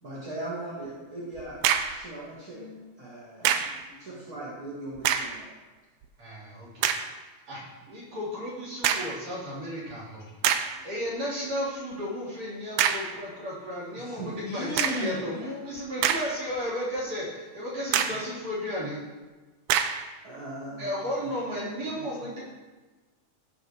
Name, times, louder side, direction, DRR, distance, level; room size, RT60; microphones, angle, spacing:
voice 1, 0.0-1.6 1.9-2.6 3.0-3.6 4.0-5.5 14.0-14.3 14.5-14.6 20.2-20.9, right 2 dB, 30° right, -9 dB, 1.9 m, -39 dB
sound 1, 1.4-2.1 3.5-3.8 5.0-5.4 6.0-6.1 6.8-7.1 8.8-9.2 9.9-10.0 10.4-10.8 12.8-13.2 14.8-15.1 15.8-16.6 17.0-17.1 17.9-18.3 19.7-20.1, right 9 dB, 80° right, 1.8 m, -26 dB
voice 2, 2.5-2.9 3.6-4.2 10.4-10.6 14.4-15.6 20.5-20.8, left 3 dB, 55° left, -2 dB, 2.0 m, -37 dB
voice 3, 6.2-6.9 7.5-10.2 10.8-19.0 20.8-22.4, equal, 50° right, -7 dB, 4.9 m, -34 dB
17.5 x 6.7 x 3.2 m, 1.3 s
omnidirectional pair, 3.9 m